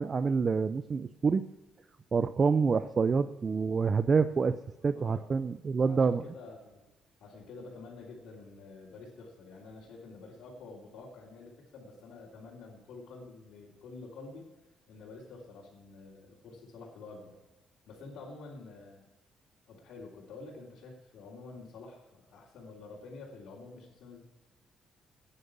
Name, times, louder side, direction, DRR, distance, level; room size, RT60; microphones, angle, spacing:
voice 1, 0.0-1.4 2.1-4.6 4.8-6.2, right 5 dB, 40° right, 12 dB, 0.5 m, -27 dB
voice 2, 4.9-5.2 5.7-6.8 7.2-14.5 14.9-17.4 17.9-19.1 19.7-24.2, left 3 dB, 75° left, -8 dB, 3.4 m, -48 dB
10.5 x 10.0 x 8.6 m, 1.1 s
cardioid pair, 90°, 0 cm